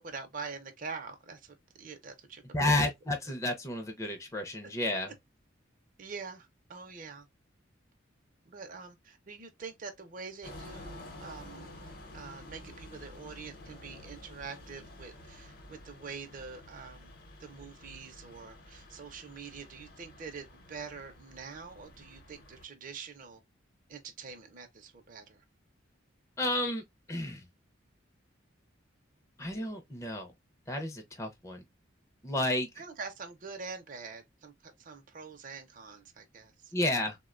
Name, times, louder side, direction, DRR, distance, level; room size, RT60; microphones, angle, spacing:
voice 1, 0.0-2.9 6.0-7.3 8.4-11.7 12.1-17.1 17.4-23.4 23.9-25.4 32.8-36.7, right 5 dB, 45° right, 0.5 m, -45 dB
voice 2, 2.5-5.1 26.4-26.8 27.1-27.5 29.4-30.3 30.7-31.6 32.2-32.7 36.7-37.2, left 1 dB, 15° left, 0.5 m, -31 dB
sound 1, 10.4-22.6, left 1 dB, 50° left, 0.8 m, -50 dB
3.5 x 2.1 x 2.3 m
head